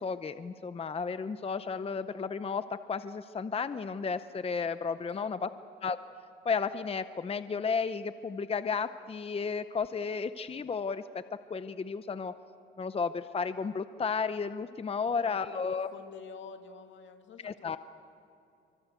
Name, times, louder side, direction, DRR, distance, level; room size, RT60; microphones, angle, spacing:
voice 1, 0.0-5.5 5.8-6.0 6.4-11.0 11.5-12.3 12.8-15.9 17.4-17.8, left 5 dB, 30° left, 11 dB, 0.8 m, -33 dB
voice 2, 5.1-5.6 15.0-17.8, left 5 dB, 70° left, 6 dB, 2.1 m, -49 dB
27.5 x 25.0 x 8.2 m, 2.7 s
cardioid pair, 90°, 20 cm